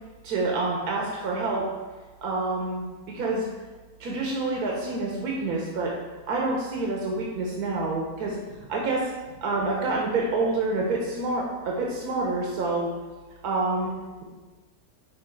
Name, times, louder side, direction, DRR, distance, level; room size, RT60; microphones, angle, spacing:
voice 1, 0.2-1.7 2.2-3.5 4.0-5.9 6.3-12.9 13.4-13.9, right 2 dB, 85° right, -2 dB, 1.5 m, -27 dB
9.4 x 3.3 x 4.5 m, 1.3 s
omnidirectional pair, 1.6 m